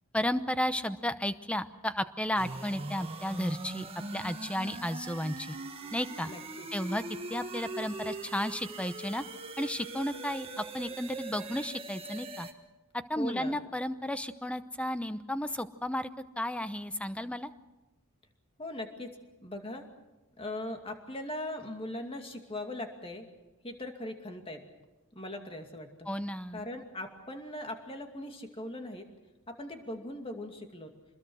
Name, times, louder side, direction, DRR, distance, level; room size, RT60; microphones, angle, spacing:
voice 1, 0.1-3.9 4.1-5.6 5.9-6.3 6.7-7.0 7.3-9.2 9.6-12.5 13.1-16.1 16.4-17.5 26.1-26.6, left 1 dB, 5° left, 11 dB, 0.8 m, -33 dB
sound 1, 2.3-12.5, right 2 dB, 25° right, 1.6 m, -41 dB
voice 2, 6.3-6.7 13.2-13.6 18.6-19.1 19.4-19.9 20.4-23.3 23.6-24.6 25.1-26.1 26.5-29.1 29.5-30.9, left 1 dB, 25° left, 4 dB, 2.4 m, -40 dB
26.5 x 21.0 x 6.3 m, 1.1 s
head